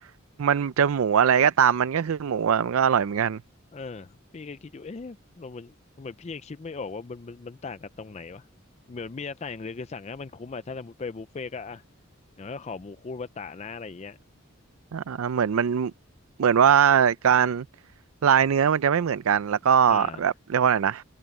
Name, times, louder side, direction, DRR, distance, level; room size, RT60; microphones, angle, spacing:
voice 1, 0.4-3.4 14.9-15.9 16.4-17.6 18.2-21.0, right 8 dB, 85° right, 0.4 m, -21 dB
voice 2, 3.7-8.5 8.9-11.8 12.4-14.2 19.8-20.3, left 4 dB, 30° left, 0.4 m, -38 dB
head